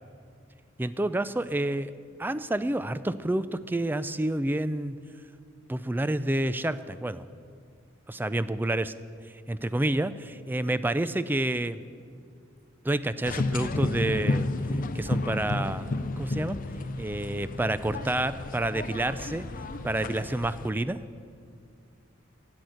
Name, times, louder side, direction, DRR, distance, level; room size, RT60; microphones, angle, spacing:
voice 1, 0.8-1.9 2.2-5.0 5.7-7.2 8.1-8.9 9.5-11.7 12.8-14.5 14.9-16.6 17.0-19.5 19.8-21.0, right 1 dB, 10° right, 14 dB, 0.3 m, -29 dB
sound 1, 13.2-20.7, left 2 dB, 45° left, 0.6 m, -32 dB
10.5 x 7.9 x 9.9 m, 2.2 s
head